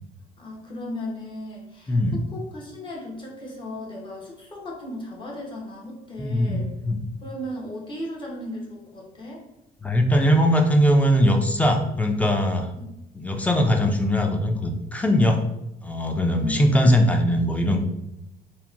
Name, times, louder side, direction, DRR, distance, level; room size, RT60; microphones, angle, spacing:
voice 1, 0.4-6.7 7.2-9.4 12.7-12.9 16.4-16.7, left 1 dB, 30° left, -2 dB, 0.8 m, -36 dB
voice 2, 1.9-2.2 6.2-7.0 9.8-12.7 13.1-15.4 15.8-17.8, equal, 10° left, 3 dB, 0.3 m, -20 dB
2.7 x 2.1 x 2.5 m, 0.87 s
cardioid pair, 110°, 17 cm